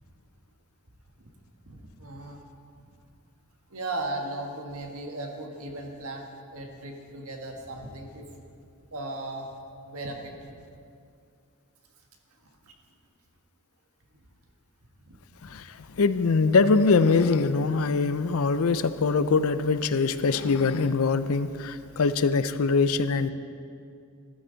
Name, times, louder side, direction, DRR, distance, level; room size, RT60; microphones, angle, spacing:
voice 1, 1.7-2.4 3.7-8.3 8.9-9.5 9.9-10.6 15.0-15.2, right 2 dB, 75° right, 2 dB, 1.6 m, -37 dB
voice 2, 16.0-23.3, left 4 dB, 75° left, 13 dB, 0.5 m, -23 dB
14.0 x 12.5 x 4.0 m, 2.4 s
head